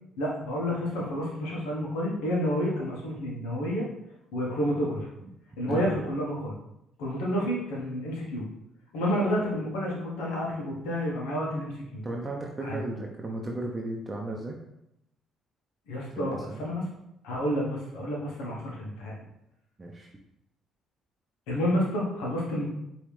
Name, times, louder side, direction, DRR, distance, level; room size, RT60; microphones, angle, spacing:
voice 1, 0.2-3.8 4.3-5.1 5.6-6.6 7.0-8.4 8.9-12.0 12.6-12.8 15.9-16.8 17.2-19.1 21.5-22.6, equal, 85° left, -2 dB, 1.3 m, -30 dB
voice 2, 12.0-14.6 16.2-16.6 19.8-20.1, right 2 dB, 25° right, 0 dB, 0.7 m, -35 dB
5.0 x 3.1 x 3.3 m, 0.83 s
supercardioid pair, 60°, 0 cm